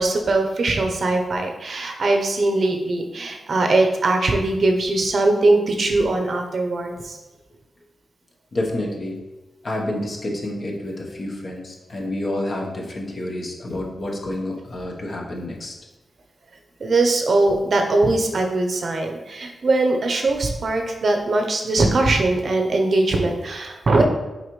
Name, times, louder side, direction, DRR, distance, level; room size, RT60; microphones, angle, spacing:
voice 1, 0.0-7.2 16.8-24.0, right 2 dB, 60° right, 3 dB, 0.7 m, -21 dB
voice 2, 8.5-9.2 9.6-15.7, left 1 dB, 45° left, 0 dB, 1.1 m, -29 dB
6.5 x 4.6 x 3.2 m, 1.1 s
wide cardioid pair, 105°, 0 cm